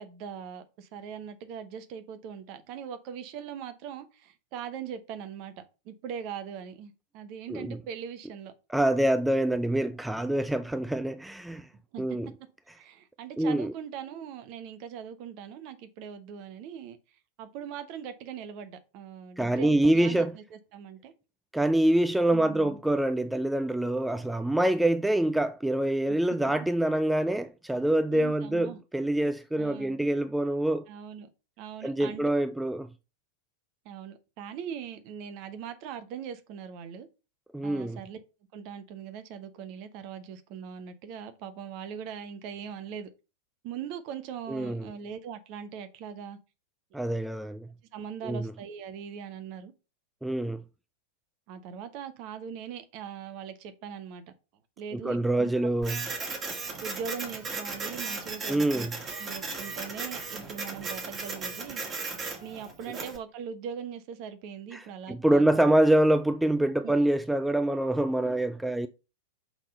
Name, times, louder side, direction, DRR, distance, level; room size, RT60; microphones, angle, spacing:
voice 1, 0.0-8.5 11.9-12.0 12.7-17.0 17.4-21.1 22.3-22.8 28.1-28.8 29.6-30.0 30.9-31.3 31.6-32.2 33.8-37.1 37.6-38.2 38.5-43.1 43.6-46.4 47.9-49.7 51.5-54.2 54.8-55.5 56.2-56.3 56.8-61.8 62.4-65.4 66.8-66.9, right 8 dB, 45° right, 0.9 m, -41 dB
voice 2, 8.7-11.7 12.0-12.3 13.4-13.7 19.4-20.3 21.5-30.9 31.8-32.9 37.5-38.0 44.5-44.9 46.9-47.7 48.2-48.5 50.2-50.6 54.9-56.0 58.5-58.9 64.7-68.9, right 1 dB, 5° right, 0.3 m, -25 dB
Printer, 55.8-63.2, right 4 dB, 25° right, 1.8 m, -36 dB
6.0 x 3.8 x 5.2 m
figure-of-eight pair, 90°, 0 cm